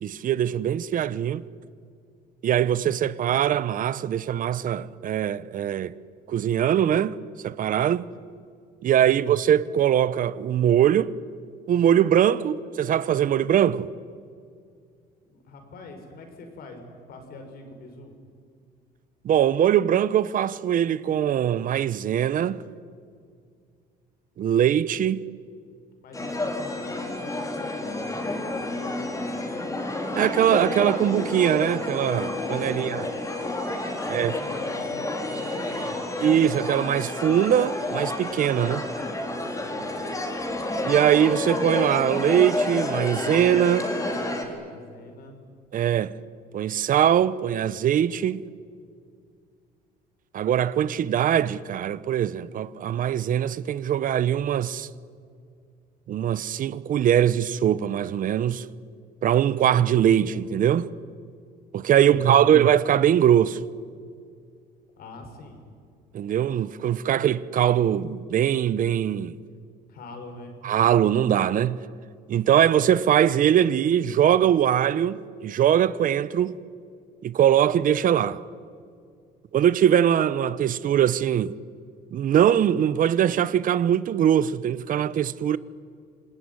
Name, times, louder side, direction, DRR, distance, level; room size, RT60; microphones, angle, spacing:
voice 1, 0.0-1.4 2.4-5.9 6.3-7.1 7.4-8.0 8.8-11.1 11.7-13.9 19.2-22.6 24.4-25.2 30.1-33.1 34.1-34.3 36.2-38.8 40.8-43.9 45.7-46.1 46.5-48.4 50.3-54.9 56.1-58.6 59.2-60.9 61.7-63.6 66.1-69.3 70.6-71.8 72.3-76.5 77.2-78.4 79.5-81.5 82.1-85.6, right 10 dB, 55° right, 0.8 m, -22 dB
voice 2, 15.2-18.1 26.0-29.7 32.6-33.0 34.0-35.9 39.6-39.9 44.0-45.4 62.0-62.6 65.0-65.6 69.9-70.6, left 2 dB, 65° left, 5.9 m, -44 dB
sound 1, 26.1-44.4, left 2 dB, 20° left, 4.1 m, -30 dB
27.5 x 19.5 x 9.8 m
cardioid pair, 110°, 17 cm